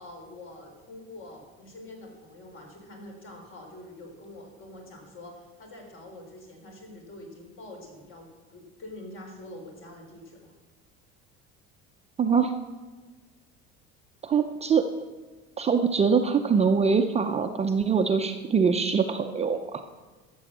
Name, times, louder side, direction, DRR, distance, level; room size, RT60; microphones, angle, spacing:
voice 1, 0.0-10.5, left 1 dB, 45° left, 2 dB, 3.7 m, -45 dB
voice 2, 12.2-12.5 14.2-14.8 15.6-19.8, right 6 dB, 20° right, 6 dB, 0.5 m, -23 dB
13.0 x 7.0 x 7.3 m, 1.3 s
cardioid pair, 140°, 30 cm